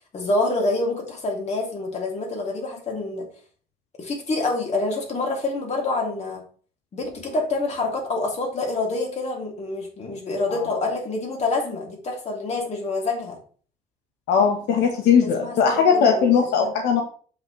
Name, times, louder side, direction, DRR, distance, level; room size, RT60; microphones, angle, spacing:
voice 1, 0.0-3.3 4.0-6.4 6.9-13.4 15.2-16.3 16.6-16.7, left 2 dB, 40° left, 0 dB, 2.9 m, -27 dB
voice 2, 14.3-17.0, left 6 dB, 85° left, 3 dB, 1.3 m, -19 dB
7.6 x 6.3 x 3.3 m, 0.43 s
cardioid pair, 110°, 17 cm